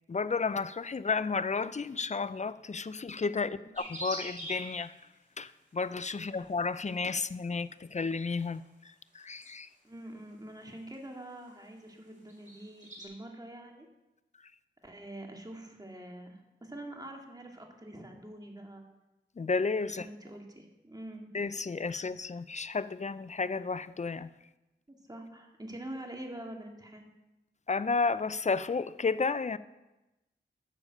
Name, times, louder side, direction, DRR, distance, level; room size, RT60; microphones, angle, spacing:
voice 1, 0.1-4.9 5.4-9.7 19.4-20.1 21.3-24.3 27.7-29.6, left 4 dB, 35° left, 15 dB, 0.5 m, -32 dB
sound 1, 3.7-4.9 6.3-6.6 8.1-8.6 9.2-9.5 10.1-10.2 10.9-11.0 11.3-11.5 11.8-13.1, right 1 dB, 40° right, 4.2 m, -42 dB
voice 2, 9.8-13.9 14.8-18.8 19.9-21.3 24.9-27.0, right 1 dB, 20° right, 1 dB, 2.3 m, -45 dB
9.9 x 6.9 x 6.5 m, 1.0 s
cardioid pair, 45°, 20 cm